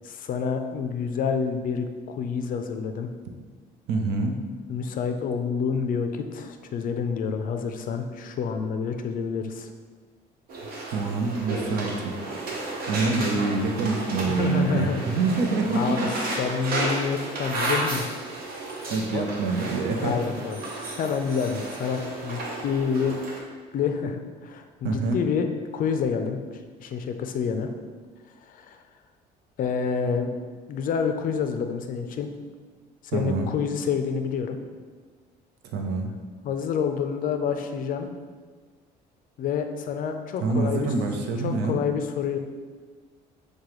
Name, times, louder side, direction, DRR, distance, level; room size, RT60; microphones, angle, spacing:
voice 1, 0.0-3.1 4.7-9.7 14.3-15.1 15.7-16.1 16.4-18.4 19.1-19.2 20.0-23.1 23.7-25.5 25.7-26.4 26.8-27.7 28.5-28.8 29.6-30.3 30.7-32.3 33.1-34.6 36.4-38.1 39.4-40.9 41.4-42.4, left 6 dB, 55° left, 7 dB, 0.4 m, -28 dB
voice 2, 3.9-4.4 10.8-12.1 12.9-16.0 18.9-20.2 24.8-25.2 33.1-33.5 35.6-36.1 40.4-41.8, right 3 dB, 80° right, 3 dB, 0.6 m, -26 dB
sound 1, 10.5-23.4, right 2 dB, 60° right, 0.9 m, -32 dB
6.5 x 2.3 x 3.0 m, 1.5 s
cardioid pair, 110°, 17 cm